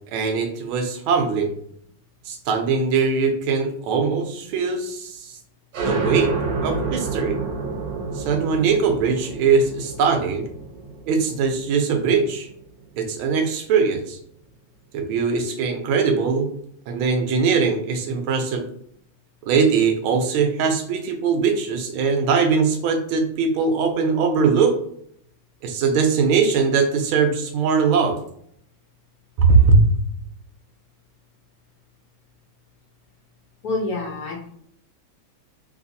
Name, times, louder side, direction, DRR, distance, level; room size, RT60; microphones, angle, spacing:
voice 1, 0.1-1.5 2.3-5.4 5.8-6.3 6.6-7.4 8.1-10.4 11.1-12.5 13.0-14.2 14.9-16.5 16.9-18.7 19.5-24.8 25.6-28.2 29.4-29.8, right 5 dB, 90° right, 5 dB, 1.5 m, -21 dB
sound 1, 5.7-13.0, right 4 dB, 70° right, 1.2 m, -29 dB
voice 2, 33.6-34.5, left 2 dB, 70° left, -1 dB, 0.9 m, -27 dB
3.3 x 3.0 x 2.6 m, 0.67 s
omnidirectional pair, 2.2 m